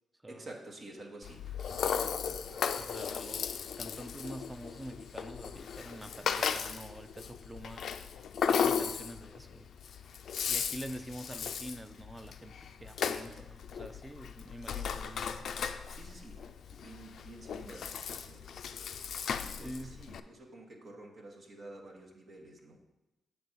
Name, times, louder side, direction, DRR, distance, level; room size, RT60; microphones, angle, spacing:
voice 1, 0.3-2.7 15.9-16.4 16.7-18.5 19.4-22.8, right 2 dB, 55° right, 0 dB, 1.1 m, -50 dB
Rattle (instrument), 1.2-20.2, left 7 dB, 65° left, 0.3 m, -36 dB
voice 2, 2.7-7.9 8.5-9.7 10.5-15.5 19.6-20.0, right 1 dB, 15° right, 10 dB, 0.5 m, -46 dB
7.5 x 3.4 x 5.9 m, 1.0 s
supercardioid pair, 45°, 0 cm